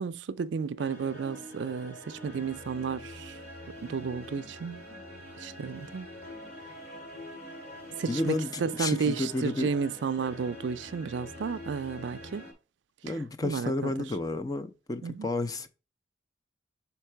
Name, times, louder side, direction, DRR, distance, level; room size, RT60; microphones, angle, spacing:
voice 1, 0.0-3.3 3.8-4.8 5.4-6.1 8.0-12.4 13.4-13.9 15.0-15.3, right 5 dB, 75° right, 0.4 m, -32 dB
sound 1, 0.8-12.5, left 1 dB, 55° left, 2.5 m, -45 dB
voice 2, 8.1-9.7 13.0-15.7, left 2 dB, 20° left, 0.4 m, -31 dB
5.7 x 4.6 x 4.4 m
head